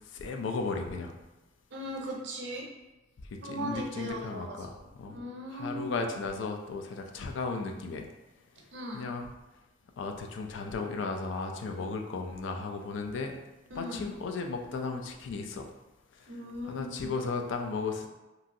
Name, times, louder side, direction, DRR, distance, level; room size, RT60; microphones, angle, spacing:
voice 1, 0.1-1.1 3.3-5.2 5.5-8.1 8.9-9.3 10.0-13.4 13.7-15.7 16.1-16.3 16.6-18.1, left 4 dB, 85° left, 4 dB, 0.4 m, -35 dB
voice 2, 1.7-2.7 3.4-4.6 5.1-5.9 8.7-9.1 13.7-14.1 16.3-17.1, equal, 70° right, -1 dB, 0.6 m, -38 dB
2.9 x 2.6 x 2.5 m, 1.1 s
head